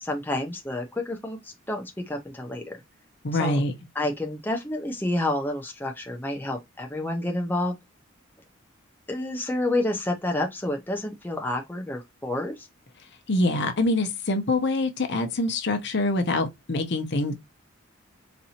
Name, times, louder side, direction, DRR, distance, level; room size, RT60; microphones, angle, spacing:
voice 1, 0.0-2.8 3.4-3.6 4.0-7.8 9.1-12.7, left 1 dB, 10° left, 0.5 m, -29 dB
voice 2, 3.2-3.7 13.3-17.3, left 2 dB, 60° left, 0.8 m, -25 dB
4.1 x 2.6 x 2.7 m
head